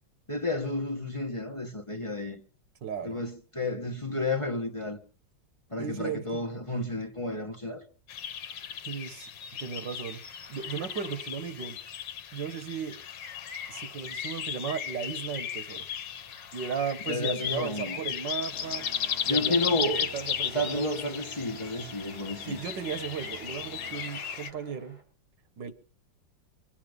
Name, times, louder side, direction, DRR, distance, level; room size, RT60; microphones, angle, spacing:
voice 1, 0.3-2.4 3.0-5.0 5.7-7.8 17.1-18.0 19.3-20.0 20.5-22.6, left 2 dB, 20° left, 1.6 m, -31 dB
voice 2, 2.8-3.2 5.8-6.4 8.9-9.3 9.6-10.2 10.5-11.8 12.3-13.0 13.7-15.8 16.5-18.9 19.2-19.6 19.8-21.0 22.5-25.0 25.6-25.7, right 7 dB, 80° right, 2.1 m, -35 dB
sound 1, 8.1-24.5, left 9 dB, 80° left, 1.6 m, -36 dB
sound 2, 18.5-25.0, right 1 dB, 5° right, 5.3 m, -48 dB
25.0 x 8.7 x 5.4 m
omnidirectional pair, 1.9 m